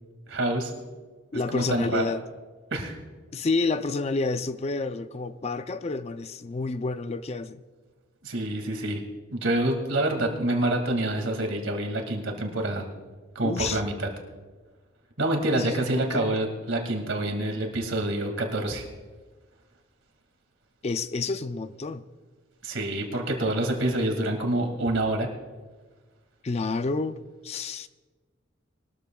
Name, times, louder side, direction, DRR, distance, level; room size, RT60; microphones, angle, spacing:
voice 1, 0.3-0.7 1.5-2.0 2.7-3.0 8.2-9.0 9.3-12.8 13.4-14.1 15.2-18.8 22.6-25.3, right 1 dB, 80° right, 2.2 m, -27 dB
voice 2, 1.3-2.2 3.3-7.6 13.4-13.8 15.5-16.3 20.8-22.1 26.4-27.9, left 3 dB, 35° left, 0.4 m, -29 dB
21.5 x 13.0 x 2.3 m
head